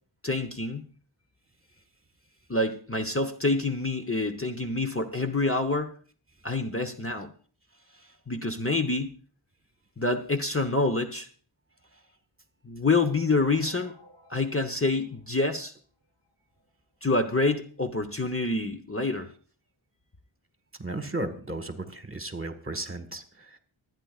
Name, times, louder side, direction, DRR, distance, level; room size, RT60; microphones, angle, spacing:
voice 1, 0.2-0.8 2.5-5.9 6.4-7.3 8.3-9.1 10.0-11.3 12.6-13.9 14.3-15.7 17.0-19.3, left 3 dB, 25° left, 6 dB, 1.0 m, -27 dB
sound 1, 12.9-15.8 16.3-16.4 16.5-16.7 17.0-17.1 17.9-18.0 18.5-18.6, right 3 dB, 65° left, 5.3 m, -51 dB
voice 2, 20.8-23.2, right 2 dB, 25° right, 8 dB, 1.5 m, -34 dB
25.0 x 9.4 x 2.4 m, 0.42 s
wide cardioid pair, 40°, 49 cm